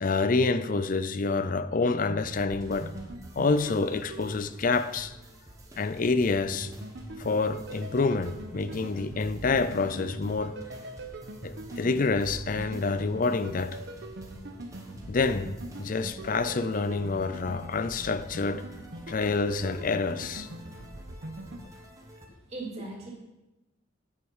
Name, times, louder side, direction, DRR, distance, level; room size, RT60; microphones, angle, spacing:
voice 1, 0.0-2.9 3.4-5.1 5.8-6.7 7.2-10.6 11.4-13.8 15.1-18.7 19.1-20.5, left 3 dB, 45° left, 0.5 m, -27 dB
sound 1, 2.0-5.0 6.5-21.6, right 1 dB, 60° right, 1.1 m, -42 dB
sound 2, 2.5-22.3, right 1 dB, 15° right, 1.3 m, -49 dB
voice 2, 22.3-23.1, right 2 dB, 35° right, 2.9 m, -39 dB
9.7 x 7.6 x 5.5 m
head